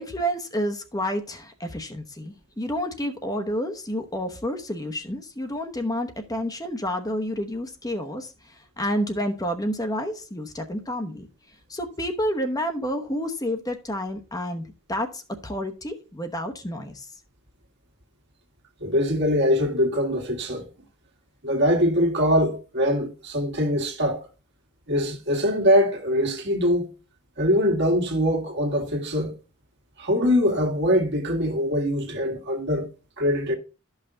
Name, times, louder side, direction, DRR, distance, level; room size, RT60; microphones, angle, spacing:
voice 1, 0.0-11.3 11.7-17.1, equal, 15° left, 1.0 m, -29 dB
voice 2, 18.8-20.6 21.4-24.2 24.9-26.9 27.4-29.3 30.0-32.9 33.2-33.6, equal, 55° right, 1.9 m, -23 dB
12.5 x 5.7 x 3.9 m
head